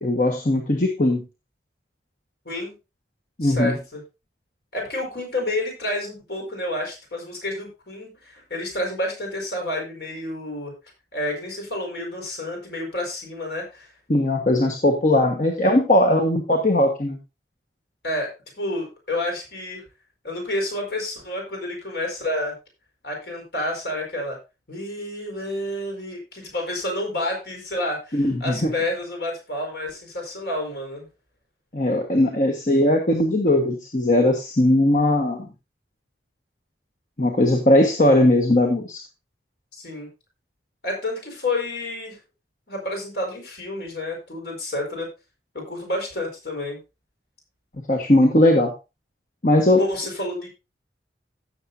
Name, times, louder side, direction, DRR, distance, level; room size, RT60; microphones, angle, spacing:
voice 1, 0.0-1.2 3.4-3.8 14.1-17.2 28.1-28.7 31.7-35.5 37.2-39.0 47.9-48.7 49.4-49.8, left 1 dB, 45° left, 2 dB, 1.4 m, -19 dB
voice 2, 3.4-4.0 4.7-10.7 11.1-13.9 18.0-19.8 20.2-22.6 23.0-24.4 24.7-31.1 39.7-40.1 40.8-42.2 42.7-45.1 45.5-46.8 49.8-50.5, left 1 dB, 65° left, 1 dB, 4.8 m, -29 dB
16.0 x 7.1 x 2.7 m, 0.27 s
head